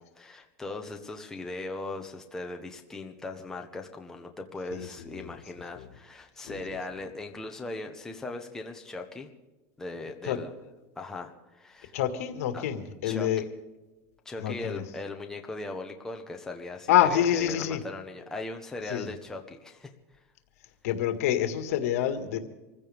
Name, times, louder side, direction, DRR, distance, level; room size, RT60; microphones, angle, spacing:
voice 1, 0.0-9.3 9.8-10.5 11.0-12.0 12.5-12.6 13.0-13.4 14.2-19.9, left 2 dB, 5° left, 2 dB, 1.1 m, -39 dB
voice 2, 4.7-5.3 5.8-5.9 6.5-6.8 10.3-10.4 11.9-13.4 14.4-14.8 16.9-17.8 18.9-19.1 20.8-22.4, left 11 dB, 75° left, 7 dB, 1.9 m, -27 dB
25.5 x 15.5 x 3.6 m, 1.1 s
supercardioid pair, 155°, 8 cm